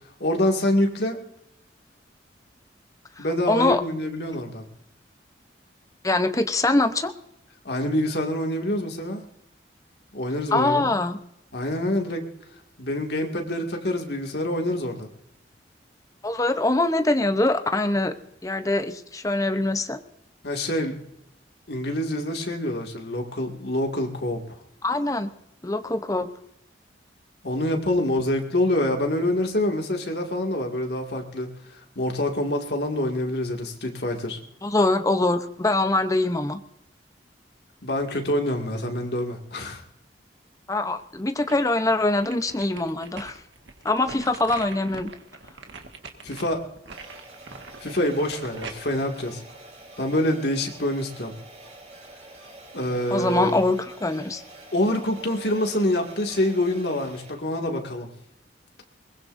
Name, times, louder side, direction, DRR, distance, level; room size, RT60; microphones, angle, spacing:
voice 1, 0.2-1.2 3.2-4.6 7.6-9.2 10.1-10.9 11.5-12.2 12.8-15.1 20.4-21.0 21.7-24.4 27.4-31.5 32.0-34.4 37.8-39.8 46.2-46.6 47.8-49.4 50.0-51.3 52.7-53.7 54.7-58.1, left 1 dB, 60° left, 2 dB, 2.2 m, -26 dB
voice 2, 3.2-3.8 6.0-7.1 10.5-11.2 16.2-18.1 18.4-20.0 24.8-25.3 25.6-26.3 34.6-36.6 40.7-43.4 43.8-45.1 53.1-54.4, left 2 dB, 20° left, 8 dB, 0.8 m, -23 dB
sound 1, 40.9-41.8 42.2-50.2 50.7-50.8, right 4 dB, 80° right, 1.7 m, -43 dB
sound 2, 46.9-57.3, right 1 dB, 40° right, 4.5 m, -47 dB
22.0 x 20.0 x 2.6 m, 0.79 s
head